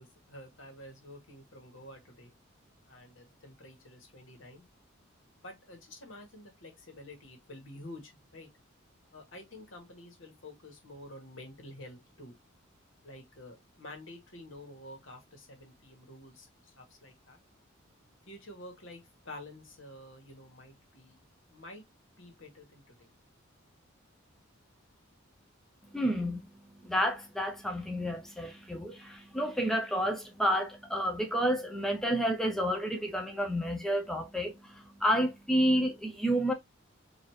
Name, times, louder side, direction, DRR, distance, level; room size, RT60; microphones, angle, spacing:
voice 1, 0.0-2.3 2.9-4.6 5.4-8.5 9.1-12.4 13.0-17.4 18.3-21.2 21.5-21.8 22.2-23.1, left 1 dB, 65° left, 1.5 m, -49 dB
voice 2, 25.9-26.4 26.9-36.5, equal, ahead, 0.4 m, -30 dB
4.2 x 2.6 x 3.1 m
head